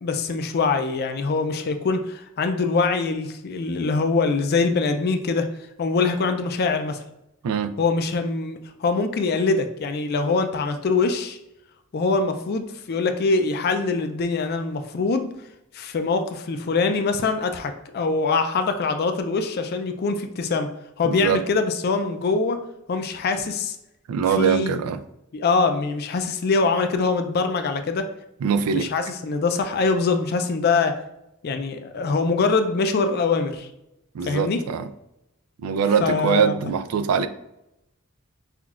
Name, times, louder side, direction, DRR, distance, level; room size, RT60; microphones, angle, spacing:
voice 1, 0.0-5.5 5.8-7.0 7.8-11.4 11.9-15.3 15.7-20.7 21.0-22.6 22.9-23.8 24.4-24.8 25.3-28.1 28.7-31.0 31.4-33.7 34.2-34.6 36.0-36.7, left 4 dB, 45° left, 7 dB, 0.4 m, -23 dB
voice 2, 21.1-21.4 24.1-25.0 28.4-28.9 34.1-34.9 35.6-37.3, right 6 dB, 85° right, 9 dB, 0.4 m, -22 dB
5.7 x 2.3 x 2.4 m, 0.86 s
head